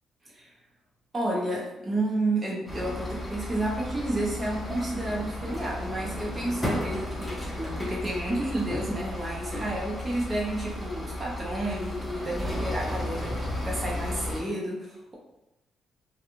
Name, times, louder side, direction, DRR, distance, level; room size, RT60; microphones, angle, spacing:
voice 1, 1.1-13.4 13.6-15.1, right 1 dB, 30° right, -4 dB, 1.0 m, -31 dB
sound 1, 2.7-14.4, left 1 dB, 10° left, 1.0 m, -34 dB
2.4 x 2.3 x 3.0 m, 0.92 s
cardioid pair, 90°, 0 cm